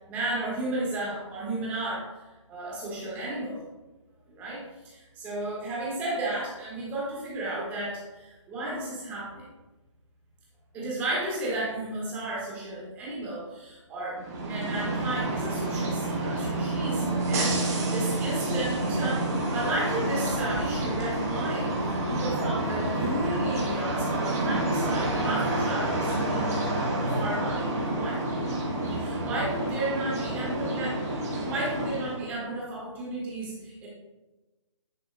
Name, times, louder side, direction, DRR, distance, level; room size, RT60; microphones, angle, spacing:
voice 1, 0.1-2.0 2.5-3.6 4.3-9.5 10.7-26.4 27.1-27.7 27.9-28.2 28.9-31.0 31.4-33.9, right 2 dB, 10° right, -6 dB, 1.4 m, -33 dB
sound 1, 14.2-32.3, right 1 dB, 30° right, 1.4 m, -28 dB
10.0 x 4.1 x 2.2 m, 1.1 s
hypercardioid pair, 165°, 16 cm